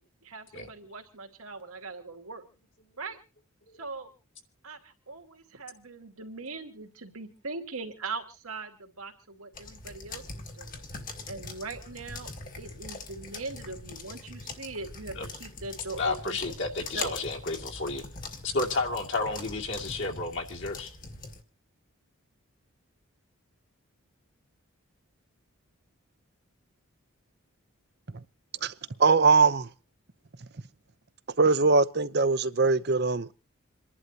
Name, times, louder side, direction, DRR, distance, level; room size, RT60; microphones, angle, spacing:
voice 1, 0.2-2.4 3.0-3.2 3.8-4.1 4.6-10.8 11.3-12.3 12.6-16.6 16.9-17.2, right 3 dB, 85° right, 2.5 m, -40 dB
sound 1, 9.5-21.4, left 3 dB, 40° left, 1.8 m, -42 dB
voice 2, 16.0-18.0 18.4-20.9, left 3 dB, 55° left, 2.4 m, -31 dB
voice 3, 29.0-29.7 31.4-33.3, right 4 dB, 50° right, 0.7 m, -21 dB
28.0 x 11.0 x 2.8 m
head